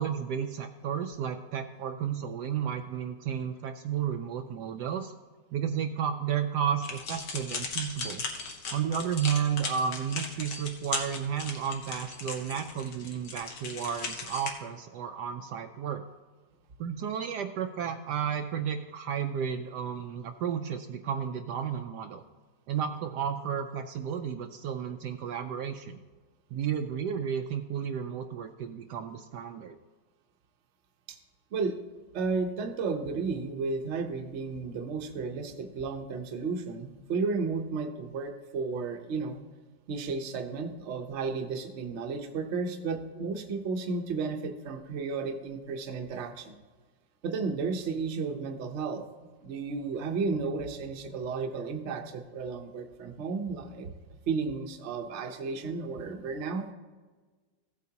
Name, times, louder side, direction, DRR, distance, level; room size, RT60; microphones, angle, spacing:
voice 1, 0.0-5.1 5.5-8.2 8.7-16.0 16.8-22.2 22.7-26.0 26.5-29.7, right 8 dB, 75° right, 6 dB, 1.1 m, -32 dB
sound 1, 6.8-14.5, left 4 dB, 70° left, 1.8 m, -37 dB
voice 2, 32.1-39.4 39.9-46.5 47.2-49.0 49.4-53.9 54.3-56.7, right 4 dB, 50° right, 5 dB, 0.9 m, -33 dB
15.5 x 8.3 x 2.8 m, 1.3 s
omnidirectional pair, 2.0 m